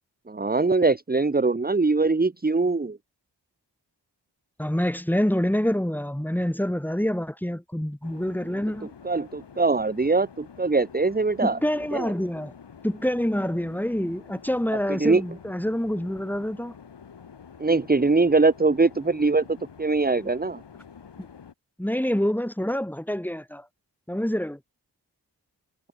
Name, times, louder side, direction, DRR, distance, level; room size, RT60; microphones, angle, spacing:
voice 1, 0.3-3.0 9.0-11.6 11.9-12.1 14.9-15.2 17.6-19.4 19.8-20.6, right 3 dB, 20° right, 1.6 m, -22 dB
voice 2, 4.6-8.9 11.4-12.5 12.8-16.7 21.8-23.6 24.1-24.6, equal, 5° left, 3.0 m, -26 dB
sound 1, 8.0-21.5, left 6 dB, 65° left, 6.3 m, -48 dB
wide cardioid pair, 155°, 44 cm